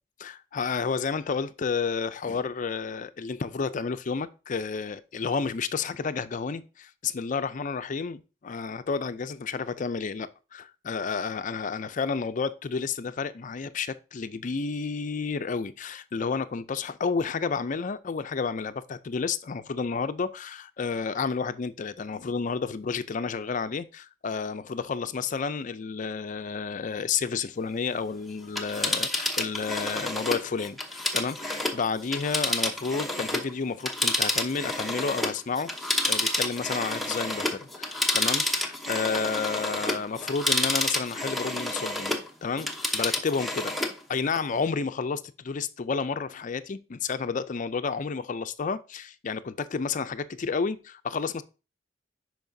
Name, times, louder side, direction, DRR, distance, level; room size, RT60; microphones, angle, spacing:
voice 1, 0.2-43.7 44.1-51.4, left 5 dB, 40° left, 0.4 m, -31 dB
Telephone, 28.4-33.5 33.8-42.3 42.6-44.0 44.4-44.5, left 1 dB, ahead, 0.8 m, -29 dB
10.5 x 4.6 x 2.7 m
head